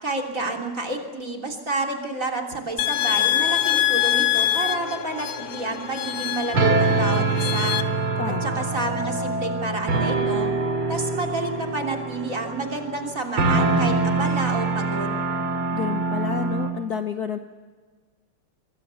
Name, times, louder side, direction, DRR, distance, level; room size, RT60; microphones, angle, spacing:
voice 1, 0.0-7.8 8.3-10.5 10.9-15.2, right 2 dB, 35° right, 1 dB, 3.4 m, -29 dB
sound 1, 2.8-7.8, left 13 dB, 80° left, 1.9 m, -24 dB
sound 2, 6.5-16.7, right 3 dB, 75° right, 3.2 m, -24 dB
voice 2, 8.2-8.6 15.7-17.4, left 7 dB, 55° left, 7 dB, 1.2 m, -30 dB
25.0 x 22.5 x 6.9 m, 1.5 s
omnidirectional pair, 2.4 m